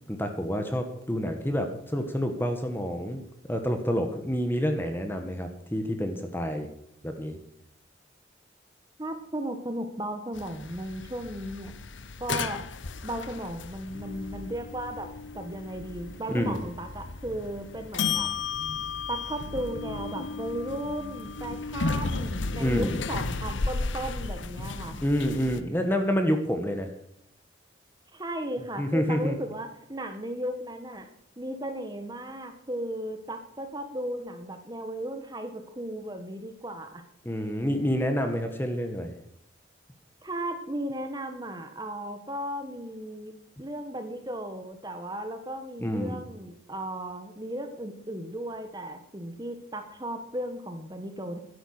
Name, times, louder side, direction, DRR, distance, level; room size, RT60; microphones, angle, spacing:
voice 1, 0.1-3.2 3.5-6.7 7.0-7.4 16.3-16.6 22.6-23.0 25.0-26.9 28.8-29.4 37.2-39.1 45.8-46.2, equal, 10° left, 5 dB, 1.3 m, -28 dB
voice 2, 9.0-11.7 12.2-12.6 13.0-15.1 15.3-18.3 19.1-25.0 28.1-31.1 31.4-37.0 40.2-43.3 43.6-51.4, right 1 dB, 20° right, 7 dB, 1.4 m, -35 dB
sound 1, 10.3-25.6, left 4 dB, 80° left, 0.8 m, -34 dB
12.5 x 10.5 x 6.6 m, 0.72 s
head